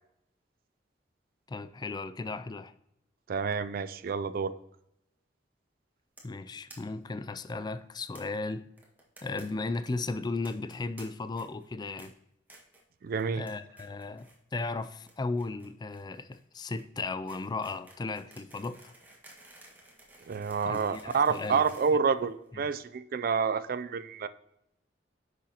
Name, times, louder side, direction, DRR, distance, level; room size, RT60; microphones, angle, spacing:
voice 1, 1.5-2.7 6.2-8.7 9.2-12.1 13.3-18.9 20.6-21.6 22.5-22.7, left 3 dB, 25° left, 0.4 m, -36 dB
voice 2, 3.3-4.5 13.0-13.4 20.3-24.3, right 5 dB, 50° right, 0.4 m, -28 dB
sound 1, 6.2-6.4 6.7-6.8 7.0-7.1 7.3-7.4 8.1-8.2 8.8-9.4 9.7-9.9 10.4-11.0 11.3-11.7 12.0-12.1 12.5-12.8 13.2-13.5 13.8-14.4 14.6-22.7, right 2 dB, 10° right, 1.7 m, -54 dB
9.9 x 6.2 x 2.9 m
head